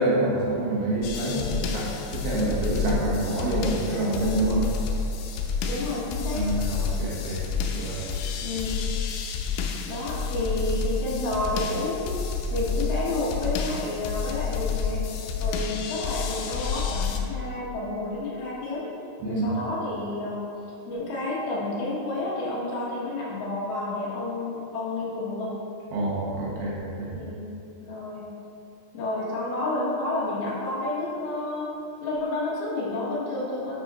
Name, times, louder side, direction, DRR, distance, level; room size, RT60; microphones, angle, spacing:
voice 1, 0.0-1.4 1.7-1.8 2.1-4.6 6.3-7.4 7.7-8.0 19.2-19.5 25.9-27.1, right 1 dB, 80° right, -5 dB, 3.6 m, -26 dB
sound 1, 1.0-17.2, left 5 dB, 85° left, 2.8 m, -29 dB
voice 2, 1.3-1.8 5.6-6.5 8.4-8.8 9.8-12.2 12.5-15.1 15.4-18.9 19.3-20.5 20.9-25.6 27.1-27.4 27.8-28.2 28.9-31.7 32.0-33.7, left 2 dB, 70° left, -6 dB, 3.1 m, -30 dB
10.5 x 6.2 x 3.0 m, 2.8 s
omnidirectional pair, 4.9 m